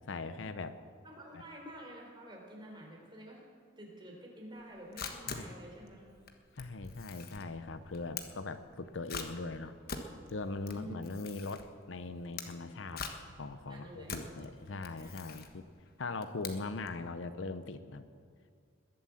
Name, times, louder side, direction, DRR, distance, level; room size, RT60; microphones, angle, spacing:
voice 1, 0.1-0.8 1.3-1.4 5.3-5.5 6.6-9.8 10.3-13.1 13.4-15.6 16.0-18.1, left 3 dB, 70° left, 11 dB, 0.7 m, -40 dB
voice 2, 1.0-3.5 3.8-6.0 10.7-11.1 13.7-15.2, right 1 dB, 25° right, -1 dB, 3.6 m, -50 dB
Camera, 4.6-17.0, left 5 dB, 50° left, 1.3 m, -45 dB
21.0 x 7.9 x 7.6 m, 2.2 s
head